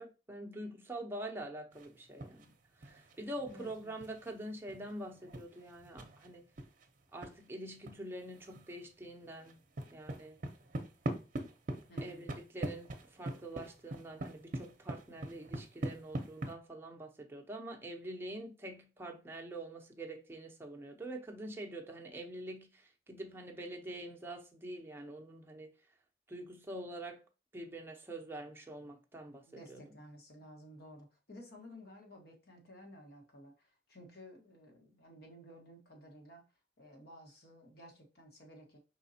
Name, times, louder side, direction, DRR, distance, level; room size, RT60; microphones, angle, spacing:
voice 1, 0.0-2.5 2.8-6.4 7.1-9.6 9.9-10.4 12.0-25.7 26.3-27.2 27.5-29.9, right 1 dB, 15° right, 0.7 m, -45 dB
sound 1, 1.7-2.5 2.8-7.4 7.8-7.9 8.2-8.8 9.1-16.5, right 1 dB, 45° right, 0.7 m, -42 dB
voice 2, 3.5-4.0 11.9-12.2 29.4-36.5 36.8-38.8, equal, 60° left, 1.4 m, -54 dB
4.9 x 3.9 x 2.7 m
head